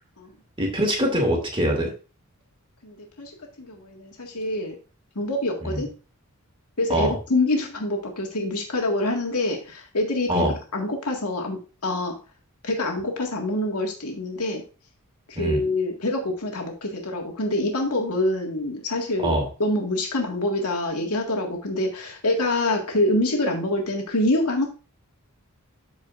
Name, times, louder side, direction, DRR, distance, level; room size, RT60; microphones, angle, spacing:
voice 1, 0.6-1.9 5.6-5.8 6.9-7.1 10.3-10.5 15.4-15.6 19.2-19.5, equal, 25° right, 1 dB, 2.3 m, -23 dB
voice 2, 2.8-3.3 3.6-4.7 5.2-5.9 6.8-10.5 10.7-12.2 12.6-14.6 15.3-24.7, left 1 dB, 80° left, 1 dB, 1.9 m, -26 dB
13.0 x 4.8 x 2.5 m, 0.34 s
head